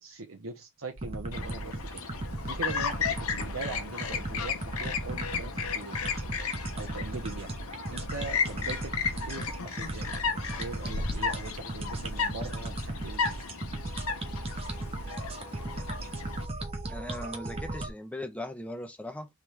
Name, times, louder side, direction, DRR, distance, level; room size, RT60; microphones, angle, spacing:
voice 1, 0.0-2.0 2.4-5.9 6.7-7.5 7.9-10.1 10.3-13.3, right 3 dB, 70° right, 0.9 m, -41 dB
sound 1, 1.0-17.7, left 1 dB, 50° left, 0.7 m, -47 dB
sound 2, 1.0-17.9, right 2 dB, 25° right, 0.8 m, -37 dB
Chirp tweet, 1.3-16.4, left 6 dB, 80° left, 0.9 m, -35 dB
voice 2, 16.9-19.3, left 1 dB, 5° left, 0.6 m, -39 dB
3.6 x 3.2 x 4.5 m
head